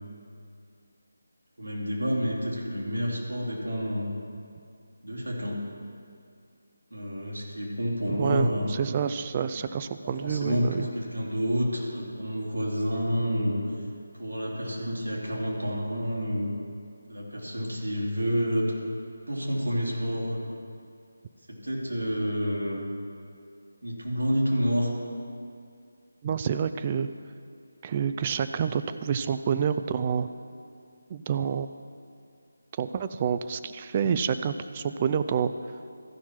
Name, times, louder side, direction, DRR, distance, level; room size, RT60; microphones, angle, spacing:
voice 1, 1.6-4.1 5.0-5.6 6.9-8.7 10.0-13.6 14.2-16.5 17.1-18.6 19.3-20.5 21.5-22.8 23.8-24.9, equal, 80° right, -3 dB, 2.7 m, -29 dB
voice 2, 8.2-10.9 26.2-27.1 27.8-30.3 31.1-31.7 32.8-35.5, right 7 dB, 25° right, 11 dB, 0.3 m, -28 dB
14.5 x 5.8 x 4.4 m, 2.4 s
figure-of-eight pair, 155°, 0 cm